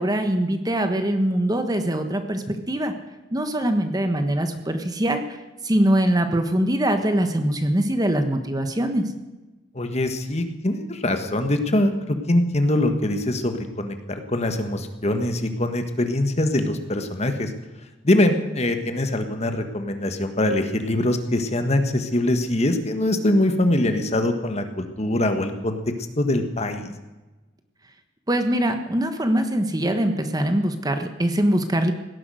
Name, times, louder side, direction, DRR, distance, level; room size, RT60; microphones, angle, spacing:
voice 1, 0.0-2.9 3.3-5.2 5.6-9.0 28.3-31.9, right 1 dB, 20° right, 7 dB, 1.3 m, -22 dB
voice 2, 9.7-11.9 12.3-17.5 18.0-25.8 26.2-26.9, left 1 dB, 35° left, 7 dB, 1.6 m, -23 dB
17.5 x 11.0 x 6.4 m, 1.1 s
head